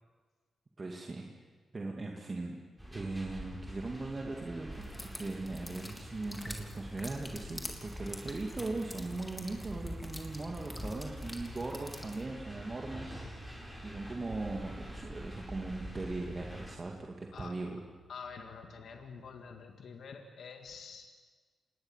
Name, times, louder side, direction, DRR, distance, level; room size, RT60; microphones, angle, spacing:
voice 1, 0.8-1.2 1.7-2.6 2.9-17.8, right 2 dB, 35° right, 0 dB, 2.5 m, -39 dB
sound 1, 2.8-16.8, equal, 5° right, 7.3 m, -46 dB
sound 2, 3.3-19.4, right 10 dB, 55° right, 7.0 m, -64 dB
sound 3, 4.8-12.2, left 1 dB, 15° left, 3.5 m, -45 dB
voice 2, 18.1-21.1, left 5 dB, 75° left, 4 dB, 1.9 m, -47 dB
26.5 x 20.0 x 7.6 m, 1.5 s
cardioid pair, 65°, 0 cm